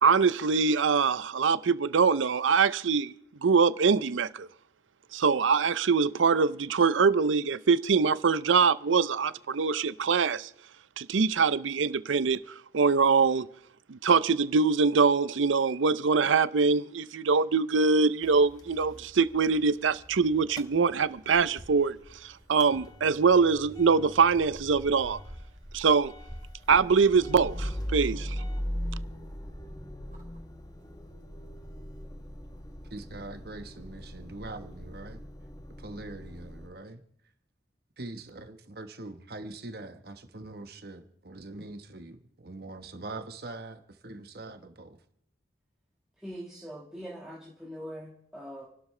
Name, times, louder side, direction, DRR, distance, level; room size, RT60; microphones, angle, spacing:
voice 1, 0.0-3.1 3.4-4.5 5.1-10.5 11.0-12.4 12.7-13.5 13.9-22.0 22.2-25.2 25.7-26.1 26.7-28.4, right 5 dB, 85° right, 0.5 m, -23 dB
Motor vehicle (road) / Engine starting / Idling, 18.2-21.4 21.7-36.7, equal, 20° left, 1.0 m, -40 dB
sound 1, 21.0-35.2, equal, 40° right, 4.4 m, -51 dB
voice 2, 32.9-35.2 35.8-37.0 38.0-45.0, right 2 dB, 55° right, 1.2 m, -43 dB
voice 3, 46.2-48.7, equal, 5° right, 1.7 m, -42 dB
29.0 x 12.0 x 3.3 m
head